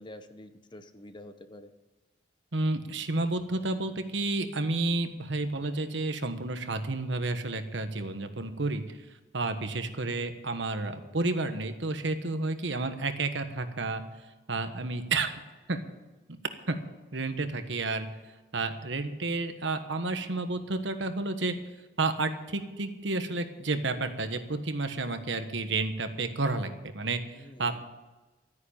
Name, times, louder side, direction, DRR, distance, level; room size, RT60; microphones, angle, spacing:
voice 1, 0.0-1.7 27.4-27.8, left 1 dB, 25° left, 10 dB, 0.8 m, -47 dB
voice 2, 2.5-9.0 9.3-14.0 14.5-15.4 15.7-15.8 16.7-16.8 17.1-18.1 18.5-21.5 22.0-27.9, right 3 dB, 65° right, 8 dB, 1.3 m, -31 dB
13.0 x 9.9 x 8.7 m, 1.2 s
head